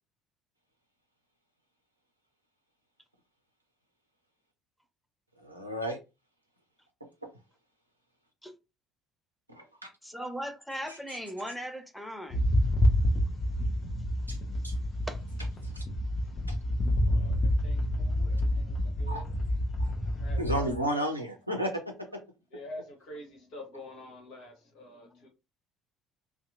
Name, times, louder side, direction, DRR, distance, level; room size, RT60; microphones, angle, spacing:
voice 1, 5.4-6.0 9.5-9.9 10.9-11.0 14.3-14.4 14.6-14.7 15.7-15.9 19.1-19.2 20.4-21.8 22.1-22.2, equal, 90° right, 0.5 m, -32 dB
voice 2, 10.0-12.4 15.1-15.2, equal, ahead, 0.5 m, -38 dB
sound 1, 12.3-20.8, left 1 dB, 35° left, 0.7 m, -28 dB
voice 3, 17.1-19.4 20.2-21.0 22.5-25.3, left 1 dB, 55° left, 1.1 m, -47 dB
2.7 x 2.1 x 2.6 m
figure-of-eight pair, 55°, 0 cm